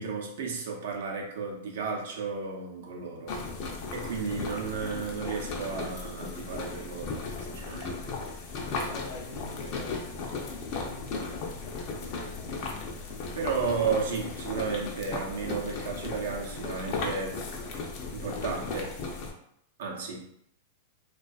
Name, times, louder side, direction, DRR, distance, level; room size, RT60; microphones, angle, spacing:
voice 1, 0.0-3.4 3.9-8.1 13.3-17.5 18.1-19.0 19.8-20.3, right 5 dB, 75° right, 0 dB, 0.6 m, -33 dB
voice 2, 3.0-3.3 4.0-4.1 7.4-7.6 8.6-13.4, left 3 dB, 65° left, -1 dB, 0.8 m, -46 dB
Boiling Water, 3.3-19.3, left 3 dB, 50° left, 0.5 m, -36 dB
2.5 x 2.3 x 2.3 m, 0.70 s
hypercardioid pair, 130°, 0 cm